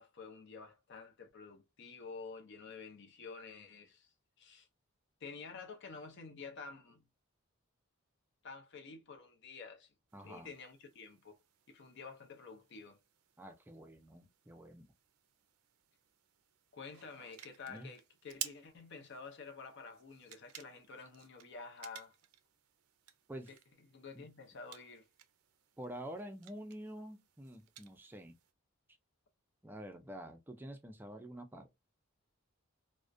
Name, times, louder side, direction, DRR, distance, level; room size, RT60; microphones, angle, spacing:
voice 1, 0.0-4.1 4.4-4.7 5.2-7.0 8.4-9.9 10.2-11.4 11.7-13.0 16.7-22.1 23.5-23.6 23.9-25.1, left 4 dB, 55° left, 0.5 m, -50 dB
voice 2, 10.1-10.5 13.4-14.9 17.7-17.9 23.3-23.5 24.1-24.3 25.8-28.3 29.6-31.7, right 1 dB, 10° right, 0.4 m, -48 dB
sound 1, 10.1-28.5, right 12 dB, 90° right, 0.4 m, -54 dB
2.3 x 2.1 x 2.5 m
head